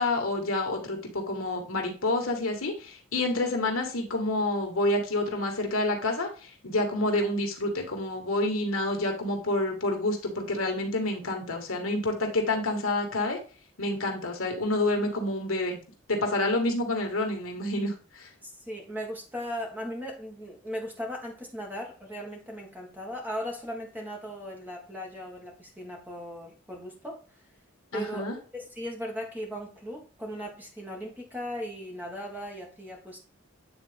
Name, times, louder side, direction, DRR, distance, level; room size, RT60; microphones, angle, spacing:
voice 1, 0.0-13.4 13.8-15.8 16.1-18.3 27.9-28.3, left 2 dB, 75° left, 3 dB, 1.7 m, -28 dB
voice 2, 18.4-27.2 27.9-33.2, equal, 10° right, -1 dB, 1.6 m, -38 dB
8.7 x 3.9 x 3.4 m, 0.37 s
head